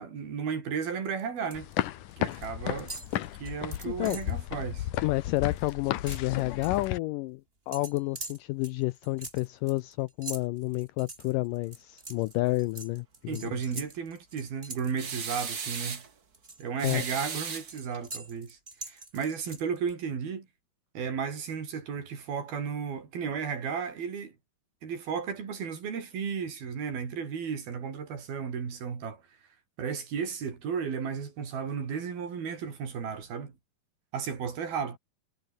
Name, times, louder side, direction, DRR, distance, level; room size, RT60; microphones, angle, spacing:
voice 1, 0.0-1.7 2.2-2.9 3.4-4.9 13.3-16.0 16.6-20.5 20.9-24.3 24.8-29.2 29.8-33.5 34.1-35.0, right 6 dB, 75° right, 6.0 m, -34 dB
sound 1, 1.0-1.7 2.0-2.5 2.8-4.4 4.8-5.0 5.2-6.9 7.7-15.9 16.3-19.9, right 3 dB, 15° right, 2.8 m, -44 dB
sound 2, 1.5-7.0, left 13 dB, 65° left, 2.5 m, -34 dB
voice 2, 3.9-4.2 5.0-13.8 16.8-17.0, left 19 dB, 80° left, 1.9 m, -30 dB
sound 3, 15.0-16.1 16.8-18.1, right 6 dB, 40° right, 1.5 m, -36 dB
omnidirectional pair, 4.3 m